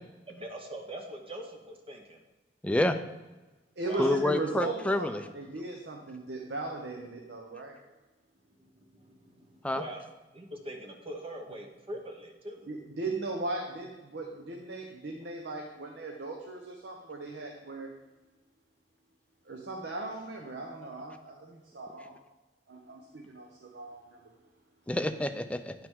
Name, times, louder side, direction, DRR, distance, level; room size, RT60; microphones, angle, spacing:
voice 1, 0.3-2.2 3.9-4.2 8.6-10.0 10.3-12.7, right 1 dB, 35° right, 2 dB, 0.8 m, -42 dB
voice 2, 2.6-3.0 4.0-5.2 9.6-9.8 24.9-25.7, left 1 dB, 5° left, 8 dB, 0.4 m, -28 dB
voice 3, 3.8-5.1 5.3-7.8 12.7-17.9 19.5-22.2 22.7-24.3, right 3 dB, 70° right, 1 dB, 0.9 m, -38 dB
9.2 x 5.7 x 3.6 m, 1.1 s
head